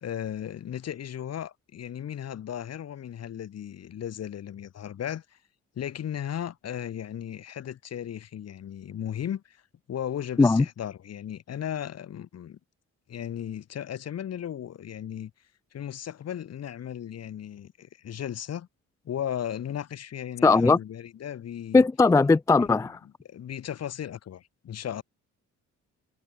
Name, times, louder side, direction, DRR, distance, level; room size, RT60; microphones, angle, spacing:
voice 1, 0.0-5.4 5.7-9.6 9.9-12.6 13.1-15.3 15.7-18.7 19.0-21.8 22.6-22.9 23.2-25.0, left 10 dB, 55° left, 1.6 m, -36 dB
voice 2, 20.4-20.8 21.7-23.0, left 3 dB, 10° left, 0.3 m, -19 dB
cardioid pair, 90°, 30 cm